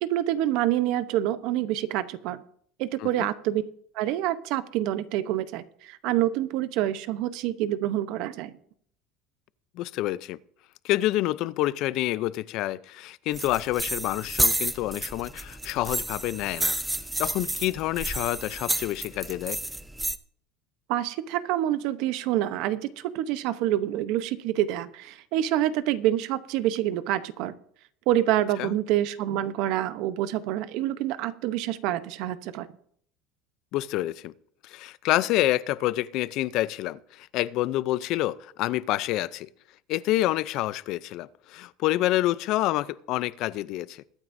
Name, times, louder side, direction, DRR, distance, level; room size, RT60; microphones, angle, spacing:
voice 1, 0.0-2.4 2.8-3.6 3.9-8.5 20.9-27.5 28.1-32.7, right 13 dB, 65° right, 0.8 m, -27 dB
voice 2, 9.8-10.4 10.8-16.8 17.2-19.6 28.6-28.7 33.7-34.3 34.6-39.5 39.9-44.0, left 16 dB, 60° left, 0.5 m, -28 dB
sound 1, 13.3-20.2, right 1 dB, 5° right, 0.5 m, -30 dB
21.5 x 9.3 x 2.6 m
supercardioid pair, 130°, 0 cm